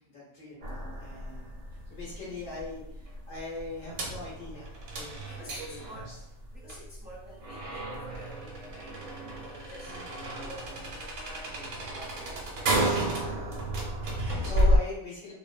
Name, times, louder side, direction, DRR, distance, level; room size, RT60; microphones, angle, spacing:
voice 1, 0.1-1.6 1.9-6.2 9.8-10.1 13.2-13.6 14.0-15.3, left 2 dB, 70° left, -7 dB, 1.4 m, -41 dB
sound 1, 0.6-14.8, right 1 dB, 90° right, 1.1 m, -32 dB
voice 2, 1.7-2.6 5.3-6.0 6.5-9.9 10.4-13.5 13.8-14.2, equal, 10° right, -9 dB, 0.7 m, -49 dB
2.9 x 2.0 x 2.3 m, 0.83 s
omnidirectional pair, 1.4 m